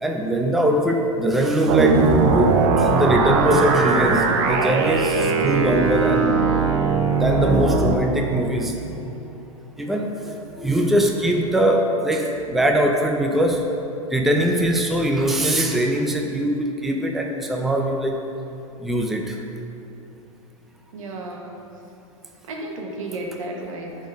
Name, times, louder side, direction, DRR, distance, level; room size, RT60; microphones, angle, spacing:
voice 1, 0.0-6.4 7.1-9.4 9.8-13.6 14.1-18.2 18.8-19.4, right 1 dB, ahead, 1 dB, 0.6 m, -22 dB
sound 1, 1.7-7.9, right 4 dB, 50° right, 0.9 m, -19 dB
voice 2, 20.9-21.6 22.4-24.0, right 2 dB, 70° right, -1 dB, 1.7 m, -33 dB
10.5 x 4.5 x 5.0 m, 2.9 s
hypercardioid pair, 115°, 17 cm